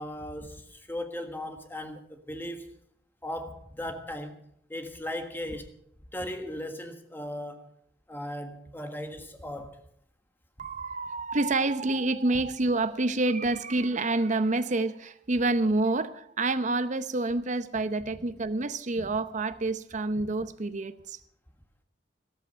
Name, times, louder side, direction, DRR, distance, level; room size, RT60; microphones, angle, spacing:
voice 1, 0.0-2.7 3.2-5.7 6.1-7.7 8.1-9.8 19.0-19.1, left 1 dB, 10° left, 1.6 m, -37 dB
voice 2, 10.6-21.2, right 2 dB, 40° right, 0.8 m, -28 dB
14.0 x 13.5 x 5.6 m
head